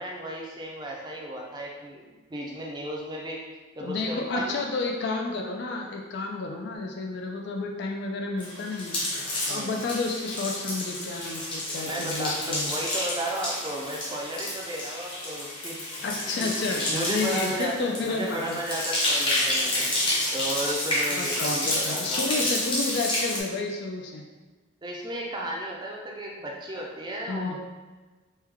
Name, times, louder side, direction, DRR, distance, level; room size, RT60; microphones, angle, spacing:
voice 1, 0.0-3.4 3.8-4.6 9.5-9.8 11.9-15.9 16.3-19.9 20.3-22.4 24.8-27.6, right 1 dB, 20° right, -1 dB, 0.5 m, -34 dB
voice 2, 3.8-9.0 9.5-12.7 16.0-18.6 21.1-24.2 27.3-27.6, left 3 dB, 55° left, 1 dB, 0.3 m, -31 dB
sound 1, 8.4-23.4, left 1 dB, 25° left, 0.7 m, -30 dB
3.2 x 2.2 x 3.4 m, 1.3 s
head